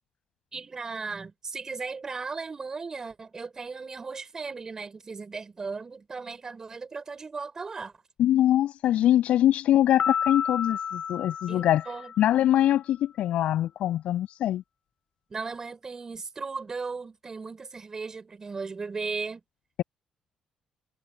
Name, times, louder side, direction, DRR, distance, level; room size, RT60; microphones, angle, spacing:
voice 1, 0.5-7.9 11.5-12.1 15.3-19.4, right 4 dB, 25° right, 7.2 m, -36 dB
voice 2, 8.2-11.8 12.2-14.6, left 12 dB, 75° left, 7.9 m, -23 dB
Piano, 10.0-12.6, left 7 dB, 50° left, 5.5 m, -31 dB
cardioid pair, 130°, 2 cm